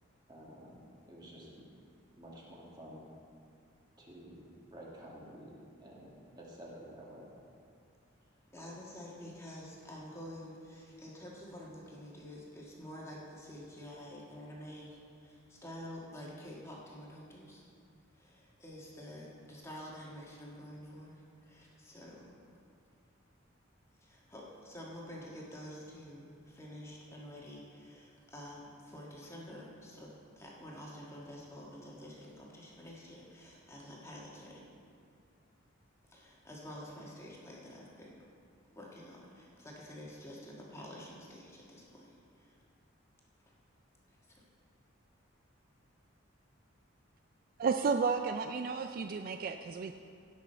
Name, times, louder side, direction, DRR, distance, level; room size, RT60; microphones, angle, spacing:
voice 1, 0.3-1.6 2.2-3.1 4.0-7.3, equal, 20° right, -4 dB, 1.8 m, -51 dB
voice 2, 8.5-17.6 18.1-22.3 24.0-30.1 30.4-34.6 36.1-38.2 38.7-42.6 44.1-44.2, equal, 15° left, -4 dB, 1.5 m, -49 dB
voice 3, 47.6-49.9, right 5 dB, 45° right, 7 dB, 0.3 m, -32 dB
17.0 x 6.2 x 4.4 m, 2.3 s
head